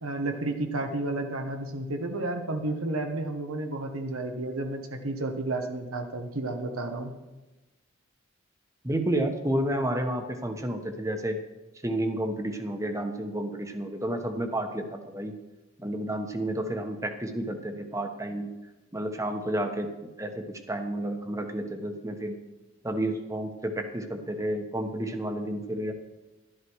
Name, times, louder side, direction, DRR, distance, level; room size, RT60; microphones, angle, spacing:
voice 1, 0.0-7.1, right 2 dB, 85° right, 5 dB, 1.3 m, -31 dB
voice 2, 8.8-11.4 11.8-15.3 15.8-18.5 18.9-22.4 22.8-25.9, right 1 dB, 15° right, 6 dB, 1.1 m, -31 dB
12.0 x 11.5 x 4.7 m, 1.1 s
head